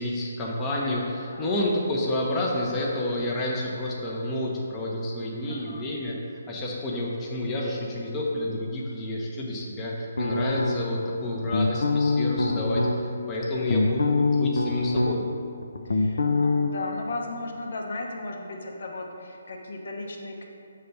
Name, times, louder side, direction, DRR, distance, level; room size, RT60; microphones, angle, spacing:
voice 1, 0.0-6.1 6.5-15.2, left 1 dB, 15° left, -4 dB, 0.7 m, -29 dB
voice 2, 1.3-1.6 5.4-5.9 13.3-14.0 15.0-15.4 15.8-20.4, left 2 dB, 65° left, 1 dB, 1.0 m, -37 dB
sound 1, 10.2-11.0 11.5-13.0 13.4-15.4 15.6-16.7, left 3 dB, 80° left, 0.5 m, -24 dB
6.6 x 3.4 x 5.4 m, 2.6 s
hypercardioid pair, 160°, 0 cm